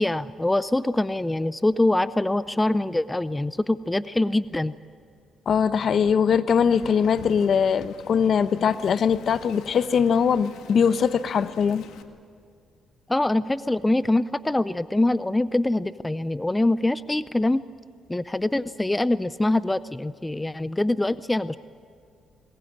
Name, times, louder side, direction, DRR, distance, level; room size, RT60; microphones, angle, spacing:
voice 1, 0.0-4.7 13.1-17.6 18.1-21.6, left 2 dB, 10° left, 15 dB, 0.5 m, -24 dB
voice 2, 5.5-11.8, left 7 dB, 55° left, 13 dB, 0.9 m, -21 dB
Wind, 6.7-12.0, left 7 dB, 85° left, 1.7 m, -45 dB
22.0 x 19.0 x 8.8 m, 2.3 s
cardioid pair, 90°, 0 cm